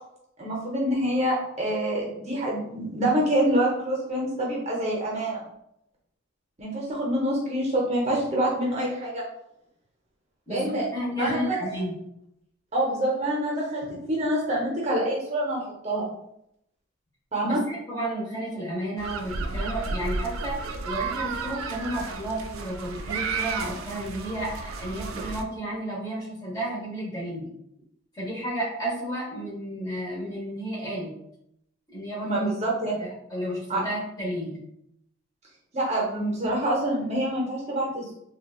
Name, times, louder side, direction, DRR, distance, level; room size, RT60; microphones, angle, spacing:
voice 1, 0.4-5.4 6.6-9.2 10.5-10.9 11.2-11.9 12.7-16.0 17.3-17.6 32.2-32.9 33.7-33.8 35.7-38.1, right 1 dB, 30° right, -3 dB, 0.7 m, -26 dB
voice 2, 10.5-11.9 17.4-27.5 28.1-31.1 31.9-32.5 33.0-34.6, right 1 dB, 20° left, -5 dB, 0.8 m, -32 dB
sound 1, 19.0-25.4, right 4 dB, 85° right, 0.4 m, -32 dB
3.7 x 2.2 x 2.3 m, 0.78 s
head